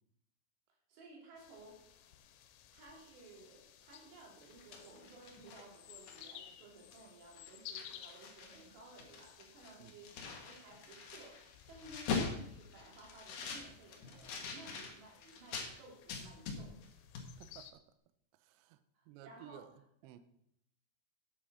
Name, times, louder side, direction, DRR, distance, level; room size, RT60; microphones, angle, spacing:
voice 1, 0.9-2.1 2.7-16.7 18.9-19.7 20.0-20.1, right 2 dB, 60° right, -1 dB, 4.8 m, -57 dB
sound 1, 1.4-17.7, left 10 dB, 85° left, 3.4 m, -57 dB
sound 2, 4.4-6.5 6.9-7.1 7.4-8.6 8.9-15.7 16.1-16.9 17.1-17.3, left 5 dB, 65° left, 2.0 m, -43 dB
voice 2, 17.4-17.8 18.4-18.8 19.1-19.7 20.0-20.2, right 11 dB, 85° right, 11 dB, 2.5 m, -55 dB
9.9 x 7.9 x 6.1 m, 0.74 s
omnidirectional pair, 5.8 m